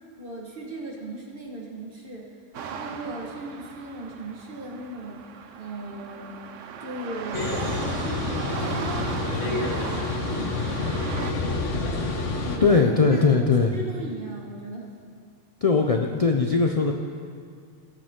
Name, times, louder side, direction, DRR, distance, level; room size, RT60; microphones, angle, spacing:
voice 1, 0.2-2.3 2.7-5.2 5.6-6.3 6.8-9.1 9.3-11.3 12.4-13.3 13.7-15.0, right 2 dB, 45° right, -1 dB, 1.7 m, -37 dB
sound 1, 2.5-11.3, right 6 dB, 85° right, 1.1 m, -37 dB
sound 2, 7.3-12.6, left 3 dB, 80° left, 1.4 m, -28 dB
voice 2, 12.6-13.8 15.6-16.9, left 4 dB, 40° left, 2 dB, 0.5 m, -20 dB
19.5 x 7.7 x 3.7 m, 2.2 s
omnidirectional pair, 1.2 m